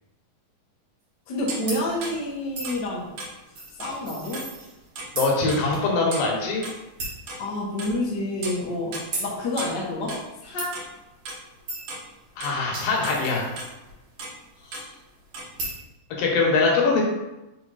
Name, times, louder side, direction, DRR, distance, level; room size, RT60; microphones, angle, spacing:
voice 1, 1.3-3.1 3.8-4.5 7.4-10.2 10.4-10.8 14.6-14.9, left 1 dB, 60° left, -4 dB, 1.1 m, -29 dB
sound 1, 1.5-5.1 5.5-6.8 7.3-8.1 8.4-8.6 8.9-11.5 11.7-12.6 13.0-13.7 14.2-14.4 14.7-14.9 15.2-15.6, right 2 dB, 65° right, 1.5 m, -36 dB
sound 2, 1.7-1.8 2.6-2.8 3.5-4.9 5.1-5.4 5.7-5.8 6.2-6.3 7.0-7.3 7.9-8.0 9.1-9.3 10.6-10.7 11.7-12.0 12.5-13.9 15.6-15.8, right 2 dB, 40° right, 1.6 m, -34 dB
voice 2, 5.1-6.6 12.4-13.5 16.2-17.0, left 3 dB, 80° left, -1 dB, 2.8 m, -22 dB
5.5 x 4.3 x 4.0 m, 0.99 s
omnidirectional pair, 4.1 m